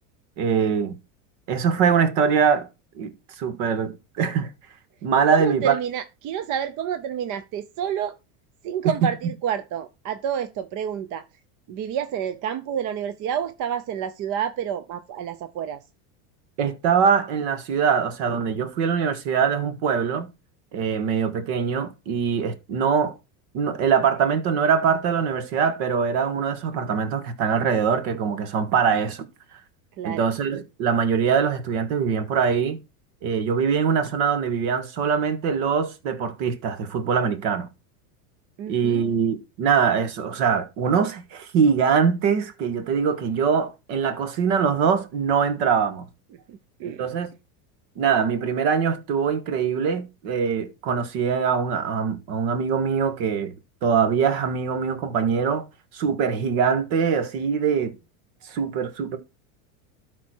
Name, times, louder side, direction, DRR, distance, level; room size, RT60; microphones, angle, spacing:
voice 1, 0.4-1.0 1.5-2.7 3.0-3.1 3.4-4.5 5.0-5.8 16.6-20.3 20.7-23.1 23.5-29.2 30.0-32.8 33.2-37.7 38.7-46.1 47.0-47.3 48.0-53.5 53.8-55.7 55.9-57.9 58.5-59.2, right 6 dB, 60° right, 1.7 m, -23 dB
voice 2, 5.3-8.1 8.6-11.2 11.7-15.8 30.0-30.3 38.6-39.1 46.3-47.1, right 9 dB, 45° right, 0.8 m, -29 dB
12.5 x 4.3 x 4.5 m
supercardioid pair, 125°, 44 cm